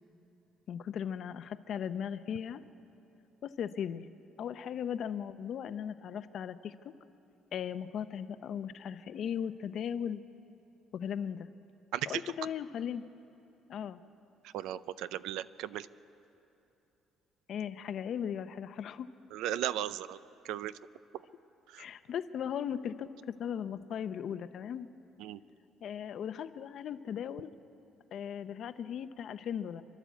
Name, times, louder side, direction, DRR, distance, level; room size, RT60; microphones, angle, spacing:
voice 1, 0.7-2.6 3.4-4.1 4.4-6.9 7.5-10.2 10.9-11.5 12.1-13.0 13.7-14.0 17.5-19.1 21.8-24.9 25.8-27.5 28.1-29.8, left 8 dB, 50° left, 12 dB, 0.7 m, -37 dB
voice 2, 14.5-15.9 19.3-20.2 20.4-20.7 21.7-21.8 25.2-25.4, right 12 dB, 85° right, 16 dB, 0.5 m, -36 dB
28.0 x 12.0 x 8.3 m, 2.9 s
cardioid pair, 155°, 0 cm